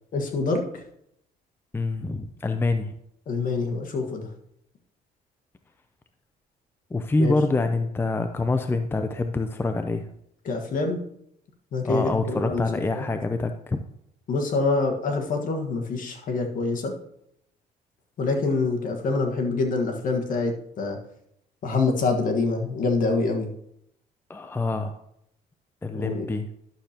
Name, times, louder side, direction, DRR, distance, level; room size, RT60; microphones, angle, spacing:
voice 1, 0.1-0.8 3.3-4.3 7.2-7.4 10.4-11.0 11.7-12.6 12.9-13.0 14.3-16.9 18.2-21.0 21.6-23.5 25.9-26.3, left 3 dB, 50° left, 3 dB, 1.5 m, -26 dB
voice 2, 1.7-2.9 6.9-10.0 11.8-13.8 24.3-24.9 25.8-26.5, left 3 dB, 15° left, 8 dB, 0.5 m, -26 dB
11.5 x 6.6 x 2.9 m, 0.75 s
cardioid pair, 110°, 17 cm